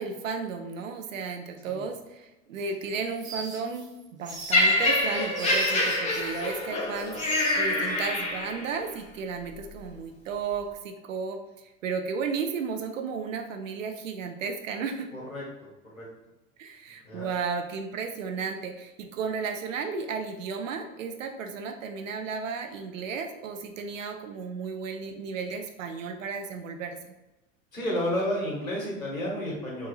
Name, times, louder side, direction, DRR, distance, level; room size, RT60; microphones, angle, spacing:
voice 1, 0.0-11.4 11.8-15.1 16.6-27.1, right 5 dB, 70° right, 5 dB, 0.5 m, -34 dB
sound 1, 2.6-6.6 6.9-7.9, right 2 dB, 10° right, 0.3 m, -40 dB
Laughter, 4.5-8.8 9.6-9.7, left 2 dB, 15° left, 0.7 m, -26 dB
voice 2, 15.1-15.4 16.0-16.1 17.0-17.3 27.7-29.9, equal, 85° left, -4 dB, 1.1 m, -31 dB
2.9 x 2.6 x 2.3 m, 1.0 s
figure-of-eight pair, 80°, 40 cm